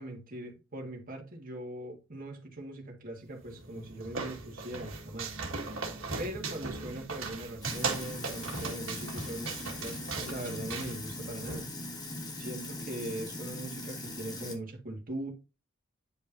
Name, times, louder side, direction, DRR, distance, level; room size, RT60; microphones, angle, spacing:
voice 1, 0.0-5.5 6.2-11.7 12.4-15.3, right 1 dB, 40° right, 1.8 m, -41 dB
sound 1, 3.4-11.6, right 4 dB, 75° right, 1.8 m, -38 dB
Sink (filling or washing), 7.6-14.6, left 2 dB, 20° left, 1.1 m, -40 dB
9.4 x 5.2 x 2.6 m
head